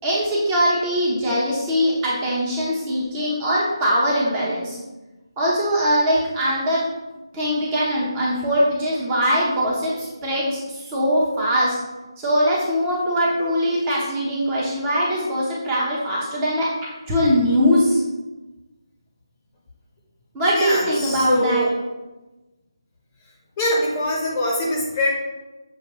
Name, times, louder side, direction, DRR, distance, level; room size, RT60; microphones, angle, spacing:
voice 1, 0.0-4.8 5.4-6.9 7.3-11.8 12.2-18.0 20.3-21.7, equal, 15° right, -5 dB, 0.8 m, -21 dB
voice 2, 20.5-21.7 23.6-25.2, left 1 dB, 20° left, -3 dB, 0.8 m, -23 dB
6.8 x 2.6 x 2.9 m, 1.1 s
figure-of-eight pair, 160°, 3 cm